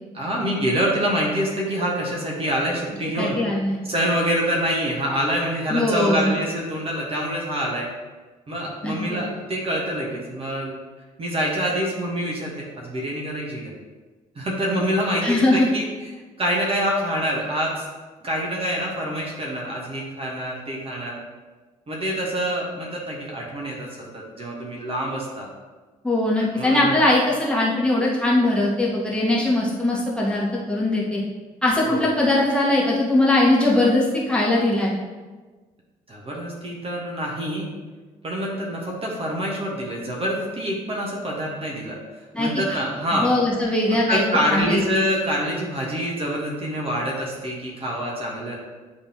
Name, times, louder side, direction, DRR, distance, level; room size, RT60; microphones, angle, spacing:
voice 1, 0.1-3.4 3.8-7.9 8.5-10.8 11.2-13.7 14.3-15.9 16.4-17.8 18.2-21.2 21.9-25.5 26.5-26.9 31.8-32.1 36.1-37.7 38.2-42.0 42.4-43.3 44.1-48.6, equal, 30° right, -3 dB, 1.4 m, -26 dB
voice 2, 3.2-3.8 5.7-6.3 8.8-9.2 15.2-15.7 26.0-31.2 31.6-34.9 42.3-42.6 43.1-44.2 44.5-44.9, left 1 dB, 5° left, -5 dB, 1.6 m, -20 dB
10.0 x 3.4 x 3.0 m, 1.3 s
figure-of-eight pair, 45°, 19 cm